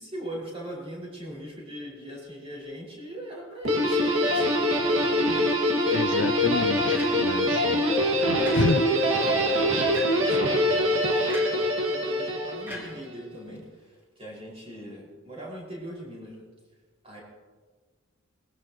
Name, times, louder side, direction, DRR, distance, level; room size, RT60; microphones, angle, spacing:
voice 1, 0.0-5.4 8.3-16.4 17.0-17.2, equal, 30° right, -3 dB, 5.2 m, -40 dB
Guitar, 3.6-13.0, equal, 80° right, 1.9 m, -24 dB
voice 2, 5.9-7.9 8.6-8.8, left 4 dB, 55° left, 12 dB, 0.5 m, -29 dB
sound 1, 6.9-7.5 8.4-9.1 9.9-10.3 11.3-11.7 12.7-13.6, left 1 dB, 10° right, 3.2 m, -41 dB
21.0 x 15.0 x 3.0 m, 1.4 s
head